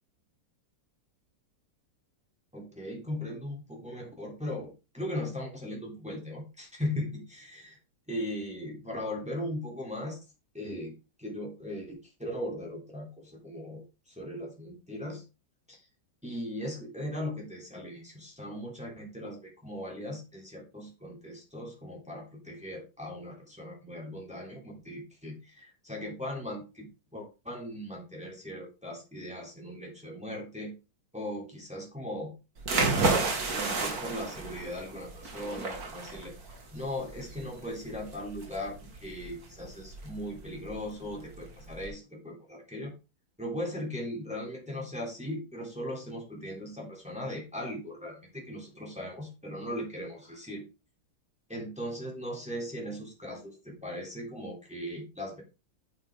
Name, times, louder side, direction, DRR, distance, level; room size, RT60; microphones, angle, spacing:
voice 1, 2.5-7.8 8.1-10.2 10.5-10.9 11.2-13.8 14.1-15.2 15.7-15.8 16.2-26.9 27.1-30.7 31.1-32.3 33.5-36.3 36.7-38.8 39.0-42.9 43.4-50.6 51.5-55.4, left 1 dB, 5° right, -2 dB, 3.4 m, -38 dB
sound 1, 32.6-41.9, right 3 dB, 50° right, 2.5 m, -32 dB
8.9 x 7.9 x 3.8 m, 0.29 s
omnidirectional pair, 2.1 m